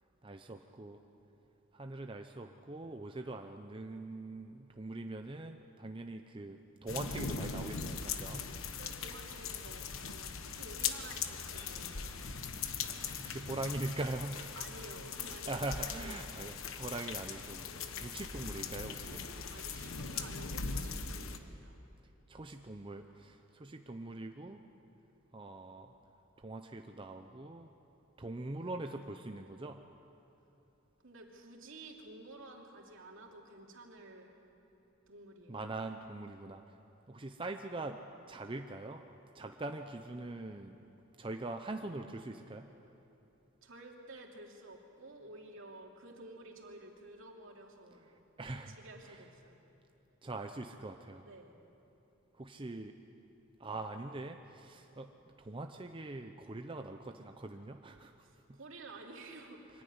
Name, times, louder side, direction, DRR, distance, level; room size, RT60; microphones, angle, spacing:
voice 1, 0.2-1.0 1.7-8.4 13.2-14.6 15.5-17.7 18.0-19.3 22.3-24.6 25.3-25.9 26.4-27.7 28.2-29.8 35.5-36.7 37.1-38.0 38.3-39.0 39.3-40.8 41.2-42.7 48.4-48.8 49.1-49.2 50.2-51.3 52.4-53.0 53.6-58.1 58.5-58.6, right 2 dB, 25° right, 5 dB, 0.7 m, -42 dB
sound 1, 6.9-21.4, left 5 dB, 75° left, 1.2 m, -40 dB
sound 2, 7.0-21.3, left 2 dB, 45° left, 2.5 m, -60 dB
voice 2, 8.8-12.4 14.5-16.3 17.9-18.2 19.5-21.8 31.0-34.4 35.1-35.6 43.6-48.1 48.5-49.6 51.3-51.6 58.2-59.6, right 2 dB, 65° right, 0 dB, 2.8 m, -52 dB
23.5 x 15.5 x 9.6 m, 3.0 s
head